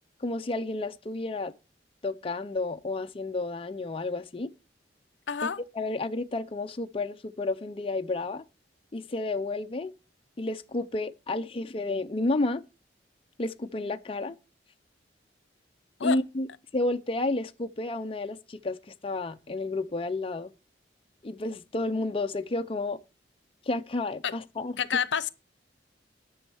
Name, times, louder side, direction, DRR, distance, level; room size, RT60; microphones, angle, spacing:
voice 1, 0.2-1.5 2.0-4.5 5.4-5.5 5.7-8.4 8.9-9.9 10.4-12.6 13.4-14.4 16.0-16.5 16.7-18.8 19.0-20.5 21.2-23.0 23.7-24.7, left 2 dB, 30° left, 0.5 m, -31 dB
voice 2, 5.3-5.6 16.0-16.2 24.2-24.3 24.8-25.3, left 7 dB, 85° left, 0.7 m, -28 dB
10.0 x 6.4 x 7.0 m
head